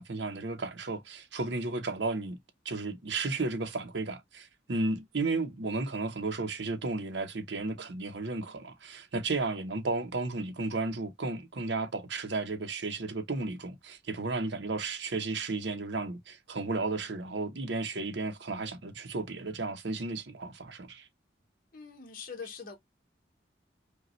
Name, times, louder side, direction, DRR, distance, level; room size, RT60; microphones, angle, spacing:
voice 1, 0.0-2.4 2.6-21.1, right 3 dB, 70° right, 0.8 m, -33 dB
voice 2, 21.7-22.8, left 5 dB, 50° left, 1.1 m, -43 dB
5.1 x 2.4 x 3.1 m
head